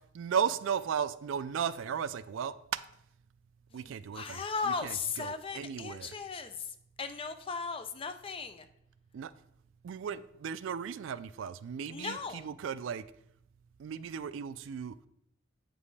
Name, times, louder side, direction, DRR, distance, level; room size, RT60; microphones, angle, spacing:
voice 1, 0.1-2.5 3.7-6.1 9.1-9.3 9.8-13.0 13.8-14.9, right 7 dB, 70° right, 0.3 m, -35 dB
voice 2, 3.7-8.7 11.9-12.5, left 5 dB, 25° left, 0.4 m, -37 dB
8.0 x 5.2 x 3.2 m
head